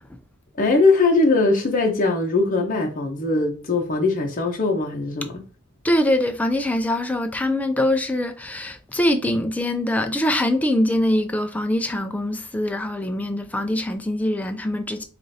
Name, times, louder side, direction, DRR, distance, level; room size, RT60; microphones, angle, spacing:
voice 1, 0.6-5.3, left 3 dB, 40° left, 0.7 m, -20 dB
voice 2, 5.8-15.0, left 1 dB, 5° left, 0.3 m, -23 dB
4.8 x 2.4 x 2.7 m
head